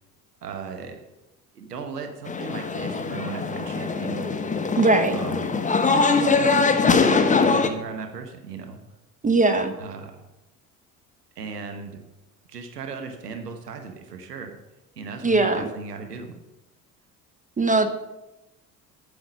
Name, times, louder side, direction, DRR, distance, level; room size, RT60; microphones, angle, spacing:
voice 1, 0.4-1.0 1.5-4.4 5.1-5.5 5.8-8.8 9.8-10.2 11.4-12.0 12.5-14.5 15.0-16.3, right 5 dB, 85° right, 5 dB, 1.0 m, -36 dB
sound 1, 2.3-7.7, left 4 dB, 15° left, 0.9 m, -22 dB
voice 2, 4.8-5.2 9.2-9.7 15.2-15.7 17.6-17.9, right 3 dB, 15° right, 8 dB, 0.9 m, -20 dB
9.3 x 7.1 x 5.2 m, 0.98 s
figure-of-eight pair, 60°, 46 cm